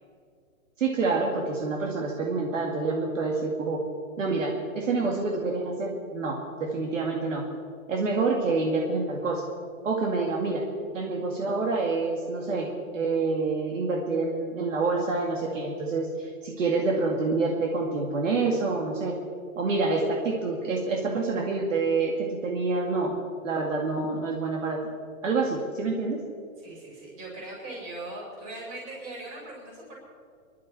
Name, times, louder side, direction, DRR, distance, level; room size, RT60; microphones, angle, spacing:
voice 1, 0.8-3.8 4.2-7.4 7.9-9.4 9.8-10.6 10.9-19.2 19.6-23.1 23.4-24.8 25.2-26.2, right 3 dB, 60° right, 0 dB, 2.2 m, -27 dB
voice 2, 26.6-29.9, right 2 dB, 25° right, -3 dB, 5.1 m, -40 dB
26.0 x 11.5 x 4.3 m, 2.3 s
hypercardioid pair, 180°, 42 cm